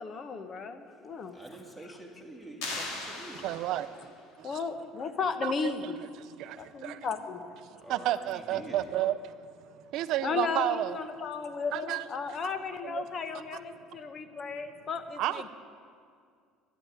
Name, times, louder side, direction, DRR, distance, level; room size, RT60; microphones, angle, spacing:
voice 1, 0.0-1.4 1.8-2.0 4.4-6.0 6.6-7.6 10.2-15.5, left 5 dB, 30° left, 10 dB, 1.0 m, -35 dB
voice 2, 1.3-3.4 3.9-4.0 7.8-8.8, right 1 dB, 5° left, 0 dB, 2.1 m, -46 dB
sound 1, 2.6-4.1, left 2 dB, 85° left, 3.0 m, -38 dB
voice 3, 3.4-3.9 5.4-5.9 6.8-6.9 7.9-9.1 9.9-11.0 11.7-12.0 12.9-13.0 15.2-15.5, right 13 dB, 55° right, 13 dB, 0.6 m, -30 dB
13.0 x 11.5 x 9.6 m, 2.2 s
cardioid pair, 170°, 0 cm